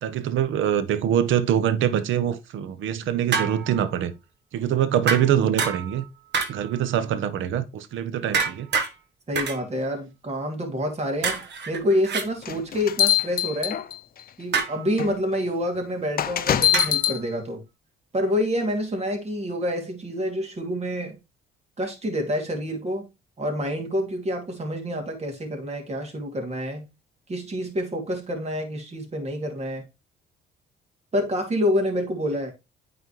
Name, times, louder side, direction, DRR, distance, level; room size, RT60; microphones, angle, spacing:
voice 1, 0.0-4.1 4.5-6.0 6.5-8.7, right 10 dB, 80° right, 0.8 m, -24 dB
sound 1, 3.3-3.9 5.1-6.0 6.3-6.8 8.3-8.9 9.4-9.6 11.2-12.3 14.5-14.9 16.7-17.1, right 5 dB, 60° right, 1.3 m, -27 dB
voice 2, 9.3-13.8 14.4-17.6 18.1-21.2 21.8-23.1 23.4-26.9 27.3-29.8 31.1-32.5, equal, 35° right, 2.6 m, -27 dB
sound 2, 12.4-14.2 15.0-15.1 16.2-17.2, left 10 dB, 50° left, 0.6 m, -23 dB
9.1 x 4.1 x 3.1 m
cardioid pair, 90°, 20 cm